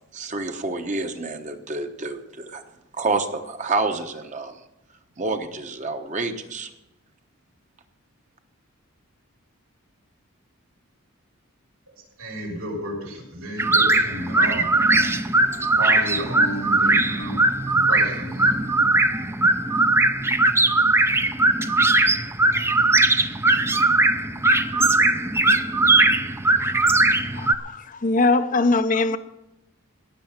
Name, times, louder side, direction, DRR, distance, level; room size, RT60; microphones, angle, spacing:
voice 1, 0.1-2.6 2.9-4.5 5.2-6.7, right 3 dB, 35° right, 1.0 m, -28 dB
voice 2, 11.9-15.3 15.8-17.4 17.7-18.6, right 1 dB, 85° right, 6.6 m, -32 dB
sound 1, 13.6-27.6, right 2 dB, 10° right, 0.5 m, -19 dB
voice 3, 28.0-29.2, left 3 dB, 40° left, 0.6 m, -19 dB
17.5 x 6.7 x 7.3 m
head